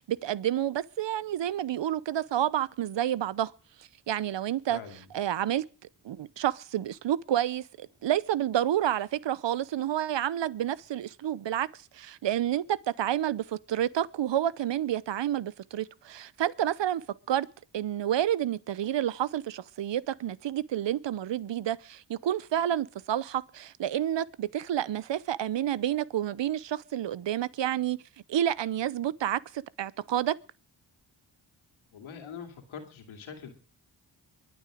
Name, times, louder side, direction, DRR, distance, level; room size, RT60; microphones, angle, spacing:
voice 1, 0.0-3.5 4.1-4.8 5.1-5.6 6.0-11.7 11.9-17.5 17.7-28.0 28.3-30.4, right 11 dB, 65° right, 0.8 m, -29 dB
voice 2, 4.7-5.1 31.9-33.5, left 7 dB, 90° left, 2.6 m, -43 dB
23.0 x 8.0 x 5.0 m
supercardioid pair, 45°, 47 cm